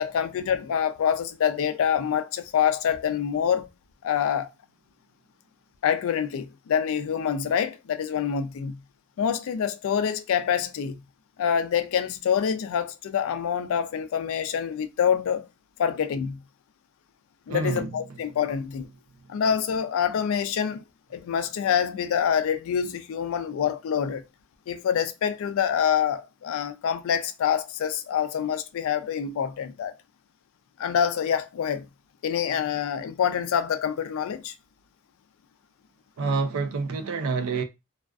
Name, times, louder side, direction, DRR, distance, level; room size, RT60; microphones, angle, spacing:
voice 1, 0.0-3.7 4.0-4.5 5.8-8.8 9.2-11.0 11.4-15.5 15.8-16.4 17.5-18.9 19.3-20.8 21.1-24.2 24.7-29.9 30.8-31.9 32.2-34.5, left 8 dB, 60° left, 0.3 m, -26 dB
voice 2, 17.5-17.9 36.2-37.6, right 4 dB, 65° right, 0.4 m, -27 dB
2.3 x 2.3 x 2.3 m
head